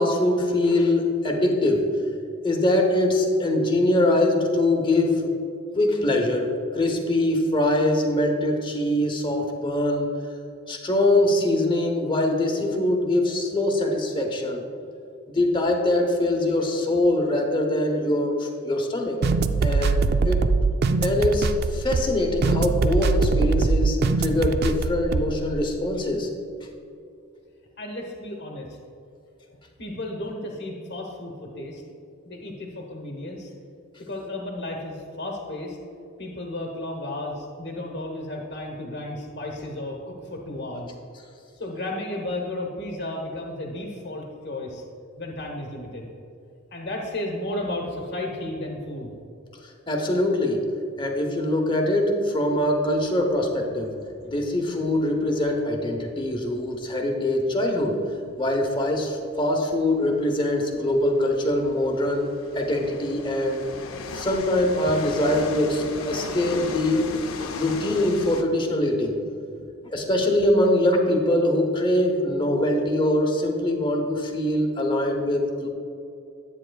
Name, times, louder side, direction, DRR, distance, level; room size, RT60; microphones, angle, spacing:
voice 1, 0.0-1.9 2.4-5.3 5.7-10.1 10.7-14.6 15.3-19.2 19.6-20.5 21.0-26.3 49.9-50.7 51.0-53.9 54.2-58.0 58.4-63.6 64.1-67.1 67.5-69.2 69.8-75.7, left 1 dB, 25° left, 3 dB, 0.9 m, -23 dB
sound 1, 19.2-25.5, right 4 dB, 50° right, 0.3 m, -22 dB
voice 2, 27.8-28.7 29.8-31.8 32.2-33.5 34.0-35.8 36.2-40.9 41.6-44.8 45.2-46.1 46.7-49.1 54.2-54.3, left 1 dB, 60° left, -1 dB, 1.0 m, -33 dB
sound 2, 53.1-56.7 57.0-57.1 57.5-57.6 58.5-58.7 58.9-59.0 59.7-68.4, left 4 dB, 80° left, 0.6 m, -37 dB
10.5 x 8.6 x 2.3 m, 2.6 s
head